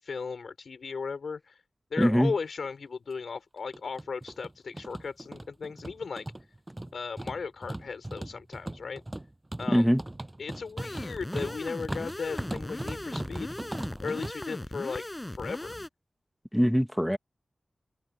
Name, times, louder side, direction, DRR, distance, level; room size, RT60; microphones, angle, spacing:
voice 1, 0.0-1.6 1.9-6.3 6.9-9.0 9.6-9.9 10.4-13.5 14.0-15.7, left 5 dB, 85° left, 5.0 m, -36 dB
voice 2, 2.0-2.3 9.7-10.0 16.5-17.2, equal, ahead, 1.2 m, -23 dB
sound 1, 2.3-2.4 2.6-2.7 3.6-14.3, right 1 dB, 25° right, 6.3 m, -39 dB
sound 2, 10.8-15.9, left 1 dB, 20° left, 5.7 m, -38 dB
open air
cardioid pair, 45°, 0 cm